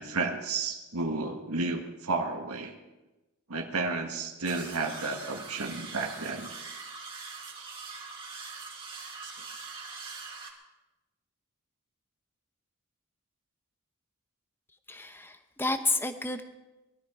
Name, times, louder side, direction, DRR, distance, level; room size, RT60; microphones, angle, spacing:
voice 1, 0.0-2.7 3.5-6.5, right 3 dB, 85° right, 3 dB, 1.6 m, -32 dB
sound 1, 4.4-10.5, right 4 dB, 25° right, 2.2 m, -42 dB
voice 2, 14.9-16.5, left 2 dB, 10° left, 8 dB, 0.9 m, -31 dB
20.0 x 13.0 x 4.9 m, 1.1 s
head